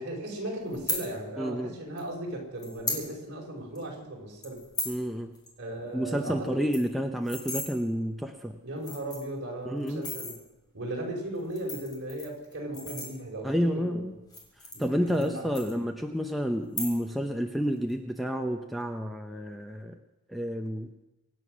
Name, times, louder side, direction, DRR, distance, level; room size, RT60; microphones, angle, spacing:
voice 1, 0.0-4.6 5.6-6.5 8.6-10.3 10.7-14.0 14.7-15.5, right 1 dB, 50° right, -1 dB, 4.8 m, -37 dB
sound 1, 0.7-1.0 2.0-2.1 2.6-3.0 3.4-3.5 3.7-4.0 4.4-5.0 5.3-5.5 5.8-5.9 6.2-6.3 6.5-7.7 8.4-8.5 8.8-9.4 9.9-10.4 11.3-13.5 14.2-15.3 15.5-16.2 16.6-17.2 17.5-17.9, left 3 dB, 20° left, 3.3 m, -36 dB
voice 2, 1.4-1.7 4.8-5.3 5.9-8.6 9.6-10.1 13.4-14.2 14.8-20.0 20.3-20.9, equal, ahead, 3 dB, 0.7 m, -30 dB
24.5 x 9.3 x 6.3 m, 0.98 s
head